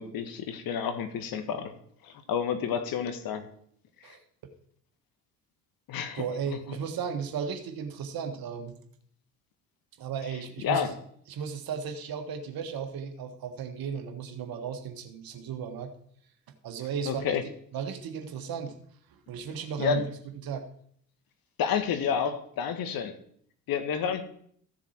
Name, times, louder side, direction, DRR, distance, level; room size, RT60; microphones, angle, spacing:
voice 1, 0.0-1.7 2.0-3.5 4.0-4.2 5.9-6.6 10.6-10.9 17.1-17.4 19.8-20.0 21.6-23.2 23.7-24.2, left 7 dB, 45° left, 9 dB, 1.5 m, -30 dB
voice 2, 6.1-8.8 10.0-10.9 11.3-15.9 16.6-17.4 17.7-18.7 19.1-20.0 20.4-20.6, right 7 dB, 45° right, 6 dB, 1.7 m, -35 dB
14.5 x 7.1 x 4.4 m, 0.64 s
figure-of-eight pair, 55°, 47 cm